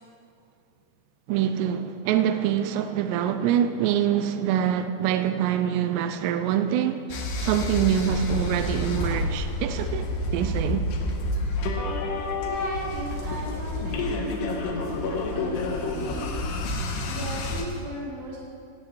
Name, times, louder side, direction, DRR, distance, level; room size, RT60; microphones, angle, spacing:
voice 1, 1.3-10.9, right 10 dB, 85° right, 2.7 m, -25 dB
sound 1, 7.1-17.6, left 2 dB, 80° left, 3.1 m, -29 dB
voice 2, 12.4-16.4 17.1-18.4, right 1 dB, 40° right, 3.4 m, -36 dB
17.5 x 12.0 x 3.1 m
omnidirectional pair, 4.8 m